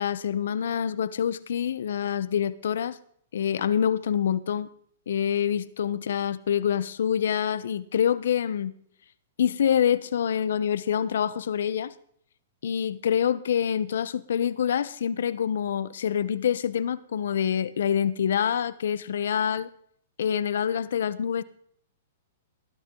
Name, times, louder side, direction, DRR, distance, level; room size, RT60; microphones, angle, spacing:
voice 1, 0.0-3.0 3.3-4.7 5.1-8.7 9.4-11.9 12.6-19.7 20.2-21.4, left 8 dB, 75° left, 17 dB, 0.9 m, -26 dB
18.5 x 12.0 x 3.9 m, 0.65 s
hypercardioid pair, 140°, 0 cm